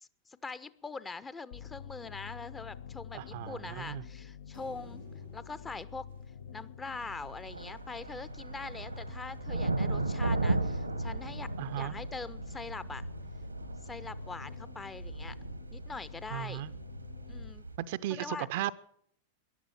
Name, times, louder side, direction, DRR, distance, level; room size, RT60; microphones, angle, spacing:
voice 1, 0.0-5.0 5.3-6.1 6.5-11.5 11.8-13.1 13.8-15.4 15.7-16.6 17.3-17.6 18.1-18.5, left 4 dB, 15° left, 16 dB, 0.7 m, -43 dB
sound 1, 1.5-17.5, left 8 dB, 60° left, 0.7 m, -48 dB
voice 2, 3.1-4.0 11.6-11.9 16.3-16.7 17.8-18.7, right 13 dB, 50° right, 14 dB, 0.6 m, -36 dB
sound 2, 4.5-7.9, left 1 dB, 80° left, 2.0 m, -55 dB
sound 3, 6.9-17.8, right 2 dB, 85° right, 1.1 m, -36 dB
14.5 x 11.0 x 7.4 m, 0.64 s
figure-of-eight pair, 90°, 0 cm